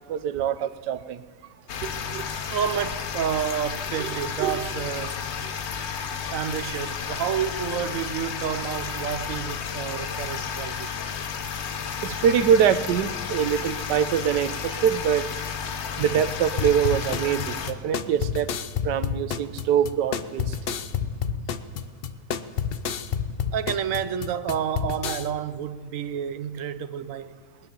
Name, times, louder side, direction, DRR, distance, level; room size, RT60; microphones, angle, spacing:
voice 1, 0.1-1.2 1.8-2.3 4.0-4.6 5.4-5.5 12.0-15.3 16.0-18.5 18.8-20.6, right 8 dB, 85° right, 1.3 m, -24 dB
sound 1, 1.7-17.7, left 7 dB, 50° left, 0.9 m, -32 dB
voice 2, 2.5-5.3 6.3-10.9 21.2-21.5 23.5-27.4, right 8 dB, 60° right, 1.0 m, -30 dB
sound 2, 16.6-25.3, left 7 dB, 70° left, 0.5 m, -29 dB
19.5 x 10.5 x 6.9 m
omnidirectional pair, 1.8 m